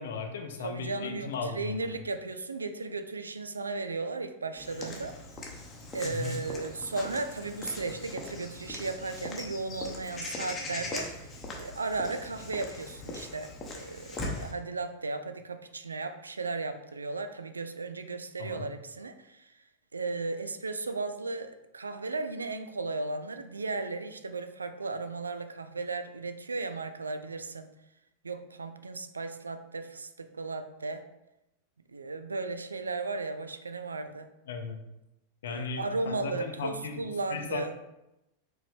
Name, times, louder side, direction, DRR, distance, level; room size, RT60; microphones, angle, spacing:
voice 1, 0.0-1.9 6.0-6.4 18.4-18.7 34.5-34.8 35.4-37.7, left 4 dB, 60° left, 4 dB, 0.6 m, -36 dB
voice 2, 0.6-5.2 5.9-11.1 11.6-19.5 19.9-27.7 28.2-31.1 31.9-34.3 35.5-37.7, right 3 dB, 75° right, 9 dB, 0.3 m, -35 dB
Walk footsteps / Bird vocalization bird call bird song, 4.6-14.5, left 2 dB, 20° left, 0.8 m, -40 dB
4.6 x 3.0 x 3.4 m, 0.91 s
figure-of-eight pair, 90°, 0 cm